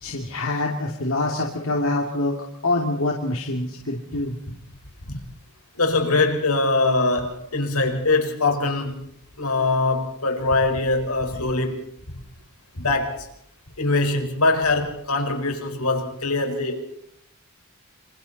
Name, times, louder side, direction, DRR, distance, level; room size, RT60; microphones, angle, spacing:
voice 1, 0.0-2.3 2.6-4.4, left 2 dB, 65° left, 0 dB, 2.7 m, -25 dB
voice 2, 5.8-9.1 9.4-11.8 12.7-13.3 13.8-16.8, left 3 dB, 80° left, 4 dB, 5.0 m, -22 dB
27.5 x 26.5 x 4.2 m, 0.69 s
head